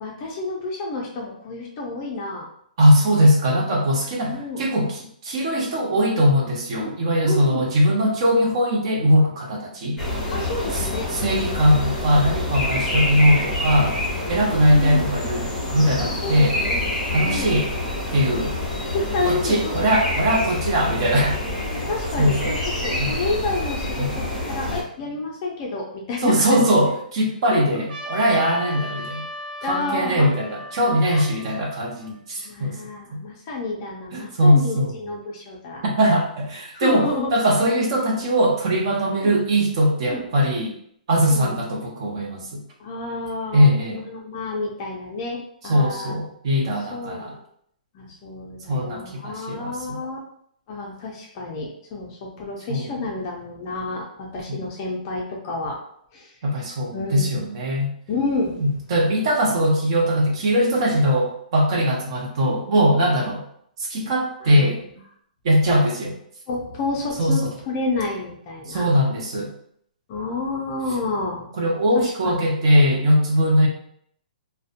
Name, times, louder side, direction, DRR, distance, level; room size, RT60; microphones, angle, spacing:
voice 1, 0.0-2.5 4.3-4.6 6.8-6.9 7.2-7.7 10.3-11.1 14.5-15.1 16.0-17.0 17.2-17.5 18.9-19.8 21.6-26.7 27.5-27.8 28.7-28.8 29.6-30.3 31.0-31.2 32.4-35.8 36.7-37.3 39.2-39.3 40.1-40.2 41.3-41.6 42.8-46.1 46.9-47.4 47.9-50.2 50.7-55.8 56.1-56.3 56.9-57.4 58.1-58.6 64.4-65.0 66.5-68.9 70.1-71.5 72.2-72.3, left 3 dB, 25° left, -1 dB, 0.4 m, -29 dB
voice 2, 2.8-10.0 10.7-10.8 11.1-14.0 14.3-16.6 17.1-17.7 18.1-18.5 19.2-21.4 22.2-22.6 23.0-23.2 24.0-24.1 26.2-29.2 29.7-32.8 33.1-33.2 34.1-34.9 35.8-40.8 41.1-42.6 43.5-44.0 45.6-47.3 48.7-50.0 52.7-52.9 54.5-54.6 56.4-57.9 58.6-63.4 63.8-64.8 65.4-66.2 67.2-67.5 68.7-69.5 71.6-73.7, equal, 40° right, -1 dB, 0.6 m, -20 dB
sound 1, 10.0-24.8, left 1 dB, 5° left, 0.8 m, -27 dB
Trumpet, 27.9-32.4, left 1 dB, 80° right, 0.7 m, -37 dB
2.6 x 2.1 x 2.4 m, 0.67 s
hypercardioid pair, 170°, 5 cm